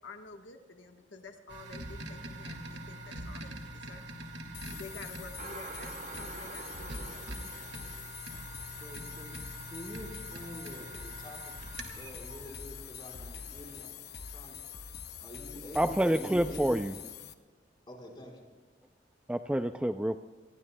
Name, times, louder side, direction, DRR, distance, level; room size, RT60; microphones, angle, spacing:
voice 1, 0.0-4.1 4.7-7.7, left 3 dB, 90° left, 4 dB, 1.3 m, -50 dB
sound 1, 1.5-13.3, right 1 dB, 75° right, 2.1 m, -45 dB
sound 2, 4.5-17.3, left 7 dB, 60° left, 0.9 m, -45 dB
sound 3, 5.4-13.9, right 4 dB, 40° right, 0.8 m, -50 dB
voice 2, 8.8-9.4 9.7-11.5 12.0-13.9 14.3-14.6 15.2-17.0 17.9-18.4, left 1 dB, 25° left, -1 dB, 4.4 m, -47 dB
voice 3, 15.7-17.0 19.3-20.2, right 1 dB, 5° right, 8 dB, 0.4 m, -28 dB
28.5 x 20.5 x 2.2 m, 1.4 s
head